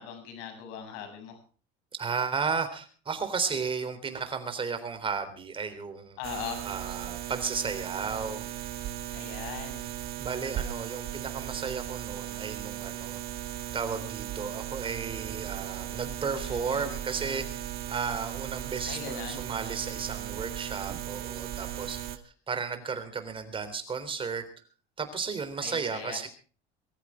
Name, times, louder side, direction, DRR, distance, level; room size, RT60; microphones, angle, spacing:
voice 1, 0.0-1.4 6.2-6.6 9.1-9.8 16.4-16.9 18.9-19.4 25.6-26.2, left 8 dB, 85° left, 7 dB, 7.2 m, -40 dB
voice 2, 2.0-6.2 6.6-8.5 10.2-24.4 25.0-26.3, right 5 dB, 25° right, 10 dB, 3.6 m, -34 dB
sound 1, 6.2-22.2, right 12 dB, 50° right, 2.0 m, -37 dB
23.0 x 14.5 x 3.7 m, 0.38 s
cardioid pair, 125°, 20 cm